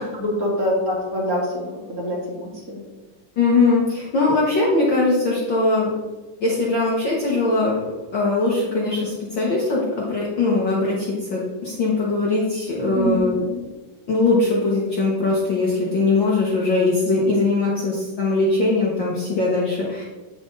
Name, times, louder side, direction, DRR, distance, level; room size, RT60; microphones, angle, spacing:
voice 1, 0.1-2.8 12.8-13.2, equal, 35° right, -3 dB, 1.7 m, -25 dB
voice 2, 3.4-5.9 6.4-7.8 8.1-13.6 14.1-20.0, left 3 dB, 65° left, -5 dB, 1.1 m, -21 dB
8.6 x 6.0 x 3.9 m, 1.2 s
omnidirectional pair, 3.9 m